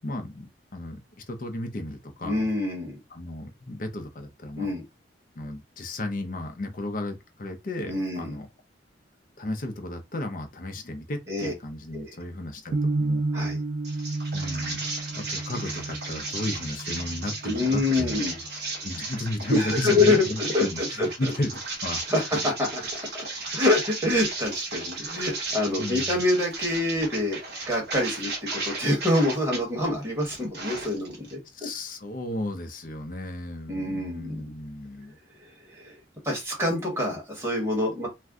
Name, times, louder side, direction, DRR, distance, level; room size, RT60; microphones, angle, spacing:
voice 1, 0.0-1.0 1.3-2.4 3.1-4.7 5.4-8.5 9.4-13.2 14.3-14.8 15.1-18.2 18.8-22.0 25.8-26.2 31.5-35.2 37.1-37.2, left 1 dB, 45° left, 0.6 m, -34 dB
voice 2, 2.2-3.0 4.6-4.8 7.9-8.3 11.3-11.5 11.9-12.1 13.3-13.6 17.4-18.3 19.5-21.1 22.1-23.3 23.5-27.4 27.7-31.7 33.7-34.5 35.8-36.0 36.2-38.1, left 2 dB, 15° right, 1.3 m, -26 dB
sound 1, 12.7-18.8, right 2 dB, 80° right, 0.4 m, -32 dB
sound 2, 13.8-29.6 30.0-31.3, right 3 dB, 60° right, 1.1 m, -35 dB
2.6 x 2.2 x 3.5 m
head